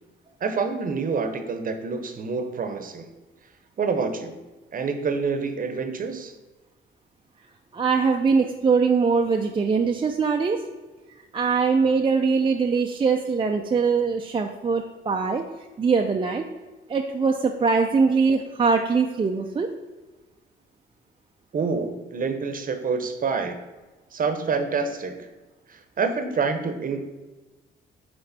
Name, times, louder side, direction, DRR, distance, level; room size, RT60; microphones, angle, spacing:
voice 1, 0.4-3.1 3.8-4.4 4.7-6.3 21.5-23.6 24.1-25.3 25.7-27.0, right 5 dB, 45° right, 8 dB, 0.8 m, -27 dB
voice 2, 7.7-10.6 11.3-15.4 15.8-16.5 16.9-19.7, right 5 dB, 25° right, 3 dB, 0.5 m, -22 dB
9.0 x 3.2 x 4.1 m, 1.2 s
cardioid pair, 90°, 20 cm